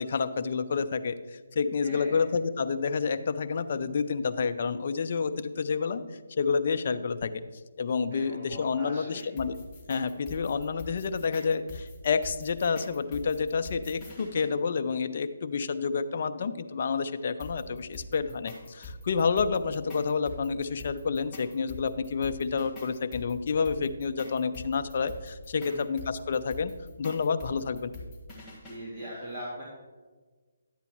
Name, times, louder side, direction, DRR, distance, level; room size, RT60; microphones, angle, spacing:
voice 1, 0.0-6.0 6.4-7.3 7.8-9.6 9.9-26.7 27.0-27.9, left 5 dB, 50° left, 10 dB, 0.5 m, -29 dB
voice 2, 1.8-2.2 8.1-9.2 25.6-25.8 28.6-29.6, equal, 15° right, -10 dB, 2.4 m, -40 dB
sound 1, 9.2-14.5 17.4-28.8, left 2 dB, 10° left, 1.6 m, -44 dB
11.0 x 8.2 x 3.0 m, 1.4 s
hypercardioid pair, 160°, 0 cm